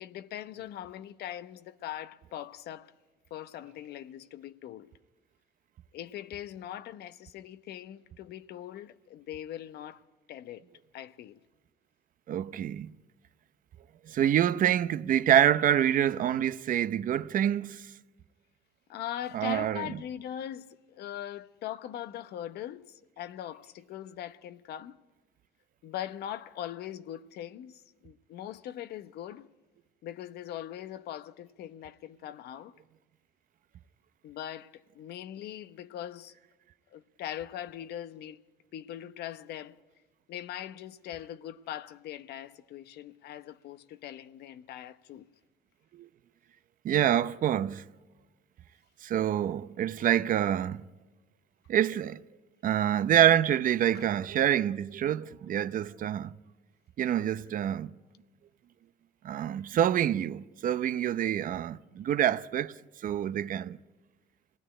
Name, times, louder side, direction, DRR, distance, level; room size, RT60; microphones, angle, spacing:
voice 1, 0.0-2.9 3.3-4.9 5.9-10.0 10.3-10.7 10.9-11.4 18.9-25.0 25.8-29.5 30.0-32.7 34.2-36.3 36.9-38.4 38.7-39.8 40.3-45.3 53.9-54.1, left 11 dB, 75° left, 0.9 m, -41 dB
voice 2, 12.3-12.9 14.1-17.8 19.3-19.9 45.9-46.1 46.8-47.8 49.0-50.8 51.7-52.2 52.6-56.3 57.0-57.9 59.2-62.7 63.0-63.8, right 10 dB, 55° right, 0.7 m, -26 dB
26.5 x 18.5 x 10.0 m
cardioid pair, 110°, 17 cm